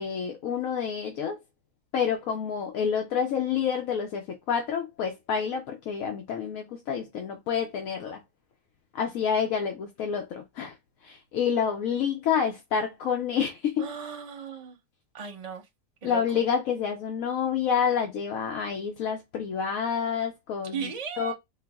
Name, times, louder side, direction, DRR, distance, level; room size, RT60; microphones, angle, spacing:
voice 1, 0.0-1.4 1.9-8.2 8.9-10.8 11.0-13.9 16.0-21.3, left 7 dB, 75° left, 1.1 m, -28 dB
voice 2, 13.8-14.8 15.1-15.6 16.0-16.4 20.7-21.3, right 7 dB, 35° right, 0.7 m, -36 dB
4.5 x 2.0 x 3.4 m
omnidirectional pair, 1.5 m